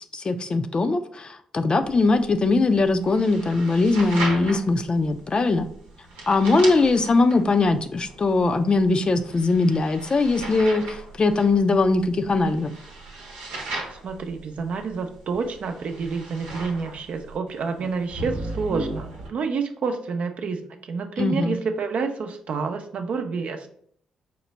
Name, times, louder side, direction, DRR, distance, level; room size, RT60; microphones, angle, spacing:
voice 1, 0.0-5.7 6.3-12.7 21.2-21.6, left 3 dB, 40° left, 9 dB, 0.4 m, -21 dB
sound 1, 1.8-19.3, right 2 dB, 90° right, 0.8 m, -37 dB
voice 2, 13.8-23.7, right 5 dB, 65° right, 6 dB, 0.5 m, -29 dB
4.5 x 2.1 x 4.0 m, 0.62 s
supercardioid pair, 50°, 2 cm